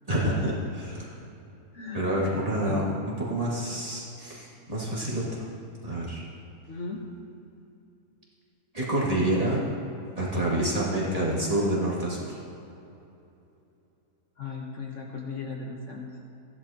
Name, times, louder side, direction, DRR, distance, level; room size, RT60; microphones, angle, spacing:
voice 1, 0.1-1.2 1.9-2.9 3.2-5.4 5.8-6.2 8.7-9.6 10.2-12.4, right 1 dB, 25° right, -7 dB, 2.2 m, -27 dB
voice 2, 1.7-2.1 2.6-2.9 6.7-7.0 14.4-16.1, left 4 dB, 55° left, -1 dB, 1.2 m, -37 dB
14.5 x 11.0 x 2.9 m, 2.8 s
omnidirectional pair, 1.7 m